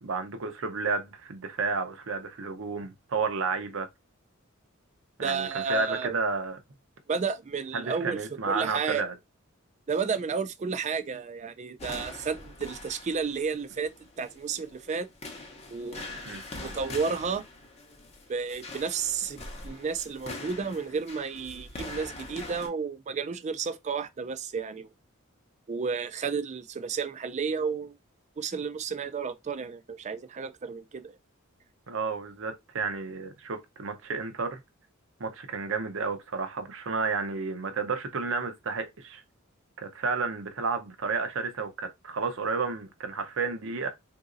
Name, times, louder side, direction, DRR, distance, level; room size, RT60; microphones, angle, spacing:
voice 1, 0.0-3.9 5.2-6.6 7.7-9.1 16.2-16.4 31.9-34.6 35.2-39.2 39.8-43.9, right 4 dB, 65° right, 0.7 m, -31 dB
voice 2, 5.2-6.1 7.1-8.2 8.5-9.0 9.9-13.9 14.2-15.1 15.7-16.2 16.6-17.4 18.3-24.9 25.7-28.0 28.4-31.2, right 5 dB, 35° right, 0.4 m, -32 dB
sound 1, 11.8-22.7, left 2 dB, 30° left, 0.7 m, -43 dB
3.8 x 2.7 x 2.5 m
head